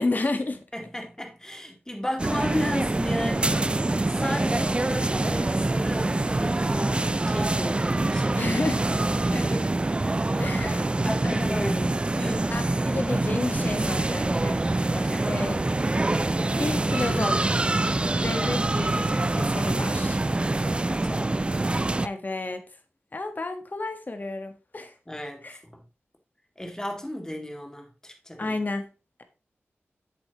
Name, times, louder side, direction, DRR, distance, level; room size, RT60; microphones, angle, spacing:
voice 1, 0.0-0.6 4.6-4.7 8.4-8.8 9.2-9.4 10.4-10.9 11.2-11.6 12.5-14.6 15.3-15.7 16.6-17.6 18.2-19.1 19.3-20.2 22.0-22.6 23.1-24.9 25.4-25.6 28.4-28.9, left 2 dB, 40° left, 1.4 m, -31 dB
voice 2, 0.7-8.6 9.3-9.7 11.0-12.6 14.9-15.3 20.7-21.4 25.1-25.8 26.6-28.6, left 1 dB, 15° left, 2.2 m, -34 dB
sound 1, 2.2-22.1, right 2 dB, 25° right, 0.3 m, -25 dB
8.1 x 7.2 x 3.0 m
wide cardioid pair, 70°, 5 cm